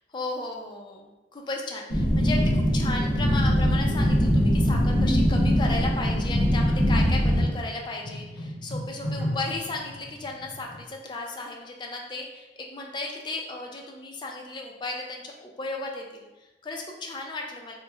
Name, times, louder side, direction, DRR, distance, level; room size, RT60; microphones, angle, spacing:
voice 1, 0.1-17.7, left 2 dB, 25° left, 1 dB, 0.4 m, -35 dB
sound 1, 1.9-7.4, equal, 50° left, 0.7 m, -22 dB
sound 2, 5.0-10.8, equal, 10° right, 1.0 m, -36 dB
3.0 x 2.0 x 3.4 m, 1.1 s
head